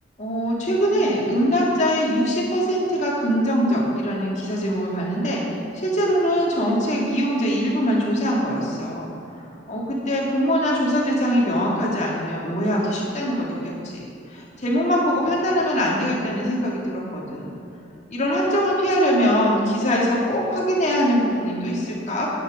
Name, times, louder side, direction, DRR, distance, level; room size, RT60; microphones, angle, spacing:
voice 1, 0.2-5.4 5.7-9.1 9.4-17.6 18.1-22.3, equal, 40° left, -3 dB, 2.2 m, -22 dB
10.5 x 8.8 x 5.0 m, 2.8 s
head